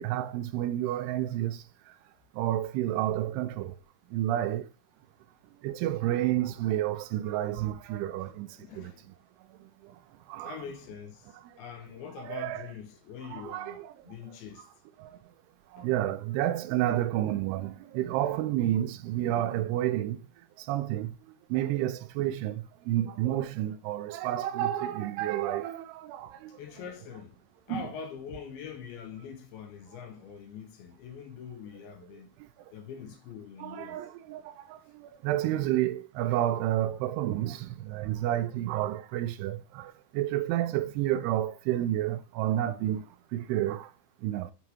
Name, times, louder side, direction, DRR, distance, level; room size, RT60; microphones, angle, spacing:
voice 1, 0.0-1.6 2.3-3.8 4.1-4.7 5.6-8.5 8.8-8.9 9.8-10.0 10.3-10.6 11.4-11.5 12.2-12.6 13.3-13.9 15.0-15.1 15.7-20.3 20.6-21.2 21.5-26.6 27.7-27.9 33.6-43.9 44.2-44.5, right 13 dB, 85° right, 2.5 m, -30 dB
voice 2, 8.2-9.1 10.4-14.7 15.8-15.9 26.5-27.4 27.7-32.3 32.7-34.1, left 7 dB, 80° left, 2.4 m, -44 dB
8.2 x 2.9 x 4.8 m
omnidirectional pair, 4.8 m